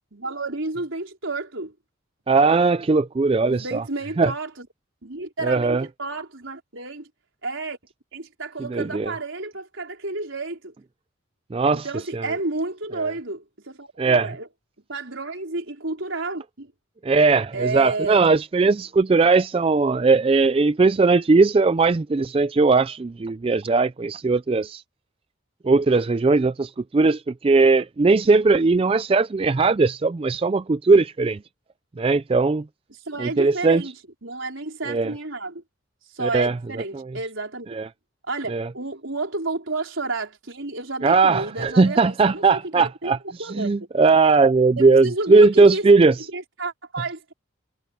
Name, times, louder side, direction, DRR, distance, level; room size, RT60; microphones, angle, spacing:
voice 1, 0.1-1.7 3.4-4.7 5.0-7.1 7.4-7.8 8.1-10.7 11.7-14.5 14.9-16.7 17.5-18.3 33.1-33.9 34.2-35.6 36.1-37.7 38.3-43.1 43.4-43.8 44.8-45.9 46.3-47.3, right 3 dB, 70° right, 4.3 m, -31 dB
voice 2, 2.3-3.8 4.2-4.3 5.4-5.8 8.7-9.1 11.5-11.9 12.1-12.3 14.0-14.3 17.0-24.8 25.6-31.4 32.0-32.6 33.2-33.8 34.9-35.1 36.2-36.6 36.9-37.0 37.7-37.9 38.5-38.7 41.0-46.1, right 3 dB, 25° right, 0.3 m, -19 dB
head